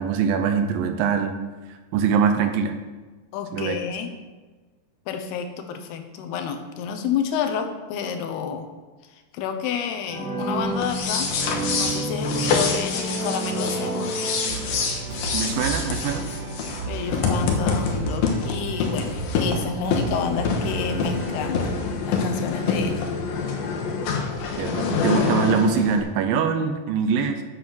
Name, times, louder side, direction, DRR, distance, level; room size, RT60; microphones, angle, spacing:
voice 1, 0.0-1.4 1.7-2.7 3.5-3.8 15.3-16.3 24.6-27.4, right 6 dB, 80° right, 7 dB, 2.3 m, -23 dB
voice 2, 3.3-4.1 5.1-8.7 9.3-11.3 11.7-14.2 16.9-21.7 22.1-23.1, left 6 dB, 90° left, 7 dB, 2.9 m, -29 dB
sound 1, 10.1-15.0, right 2 dB, 40° right, 3.0 m, -29 dB
sound 2, 10.8-26.0, left 5 dB, 70° left, 2.8 m, -26 dB
sound 3, 14.5-21.8, right 4 dB, 60° right, 3.7 m, -34 dB
8.4 x 7.2 x 6.2 m, 1.3 s
omnidirectional pair, 4.5 m